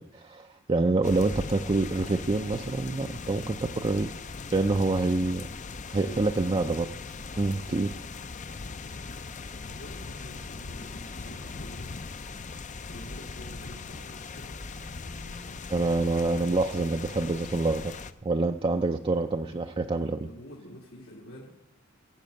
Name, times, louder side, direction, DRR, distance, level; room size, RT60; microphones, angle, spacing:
voice 1, 0.0-4.2 4.5-5.5 5.9-6.9 7.4-8.1 15.7-17.9 18.2-20.3, right 3 dB, 25° right, 5 dB, 0.5 m, -27 dB
sound 1, 1.0-18.1, left 4 dB, 40° left, 0.6 m, -40 dB
voice 2, 6.0-6.9 9.7-12.0 12.8-15.7 19.3-19.8 20.1-21.5, equal, 85° left, -4 dB, 2.4 m, -47 dB
16.0 x 6.7 x 8.5 m, 0.92 s
head